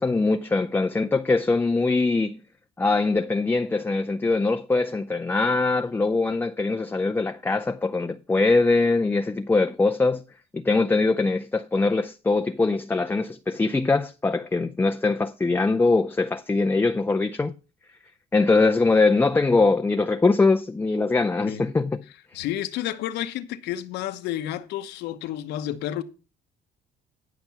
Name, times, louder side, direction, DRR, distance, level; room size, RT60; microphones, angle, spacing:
voice 1, 0.0-2.4 2.8-10.2 10.5-17.5 18.3-22.0, left 3 dB, 10° left, 0.4 m, -22 dB
voice 2, 22.3-26.0, left 12 dB, 85° left, 1.0 m, -30 dB
11.0 x 5.9 x 5.7 m
cardioid pair, 110°, 17 cm